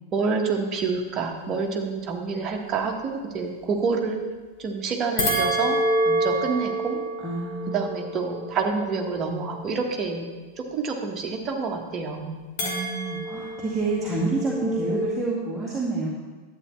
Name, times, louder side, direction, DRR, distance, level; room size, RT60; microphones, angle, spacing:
voice 1, 0.1-4.2 4.6-5.8 6.0-7.0 7.7-10.3 10.6-12.4, right 4 dB, 30° right, 1 dB, 1.4 m, -28 dB
sound 1, 5.2-9.7 12.6-15.1, right 1 dB, 50° left, 2.6 m, -28 dB
voice 2, 7.2-7.9 12.6-16.1, right 3 dB, 10° right, -7 dB, 2.0 m, -28 dB
11.5 x 8.5 x 3.2 m, 1.3 s
figure-of-eight pair, 90°, 0 cm